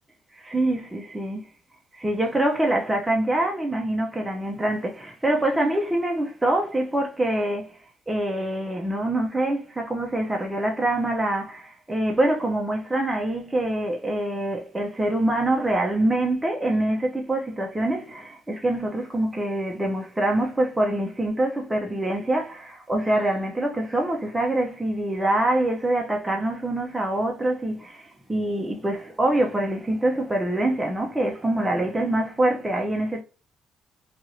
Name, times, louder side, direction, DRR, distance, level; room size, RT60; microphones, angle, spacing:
voice 1, 0.4-1.4 1.9-7.7 8.1-33.2, right 1 dB, 15° right, 0.6 m, -25 dB
2.7 x 2.4 x 2.9 m
cardioid pair, 90°, 0 cm